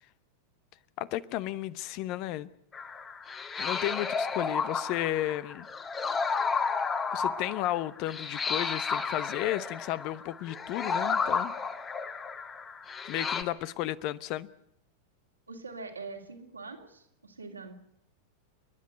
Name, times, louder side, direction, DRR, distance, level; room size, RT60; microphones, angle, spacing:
voice 1, 1.0-2.5 3.6-5.7 7.1-11.5 13.0-14.5, left 14 dB, 40° left, 0.8 m, -33 dB
sound 1, 2.7-13.4, left 5 dB, 20° left, 1.5 m, -32 dB
voice 2, 15.5-17.7, right 4 dB, 80° right, 2.7 m, -43 dB
30.0 x 10.5 x 9.2 m
figure-of-eight pair, 90°, 0 cm